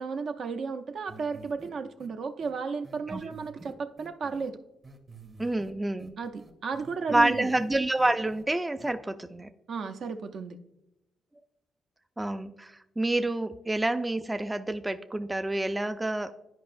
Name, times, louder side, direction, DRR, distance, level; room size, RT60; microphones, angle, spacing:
voice 1, 0.0-4.6 6.2-7.5 9.7-10.6, right 5 dB, 65° right, 6 dB, 0.5 m, -34 dB
sound 1, 1.1-1.7 2.0-2.1 2.4-2.5 2.8-4.5 4.8-5.7 6.0-7.7 8.0-8.4 8.8-8.9, right 3 dB, 35° right, 0.9 m, -49 dB
voice 2, 5.4-6.1 7.1-9.5 12.2-16.3, right 1 dB, 15° right, 10 dB, 0.3 m, -28 dB
10.5 x 5.1 x 2.5 m, 0.89 s
cardioid pair, 95°, 0 cm